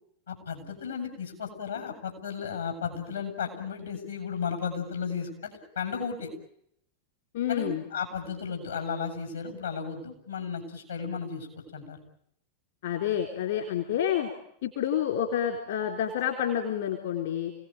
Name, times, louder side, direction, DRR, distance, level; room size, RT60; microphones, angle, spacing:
voice 1, 0.3-6.3 7.5-12.0, left 6 dB, 75° left, 3 dB, 7.5 m, -34 dB
voice 2, 7.3-7.8 12.8-14.3 14.6-17.5, left 9 dB, 60° left, 3 dB, 3.6 m, -28 dB
29.0 x 18.5 x 9.2 m, 0.75 s
figure-of-eight pair, 90°, 0 cm